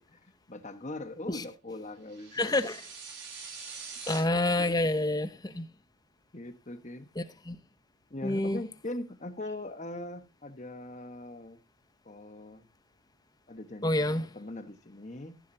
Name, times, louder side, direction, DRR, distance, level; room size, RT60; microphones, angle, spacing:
voice 1, 0.0-2.6 4.6-4.8 6.3-7.1 8.1-11.6 12.0-12.7 13.5-15.4, left 2 dB, 30° left, 1.3 m, -41 dB
sound 1, 2.1-4.2, right 5 dB, 55° right, 6.4 m, -44 dB
voice 2, 2.3-2.8 4.1-5.7 7.2-7.6 8.2-8.6 13.8-14.3, left 1 dB, 15° left, 0.8 m, -28 dB
14.5 x 10.0 x 2.8 m
head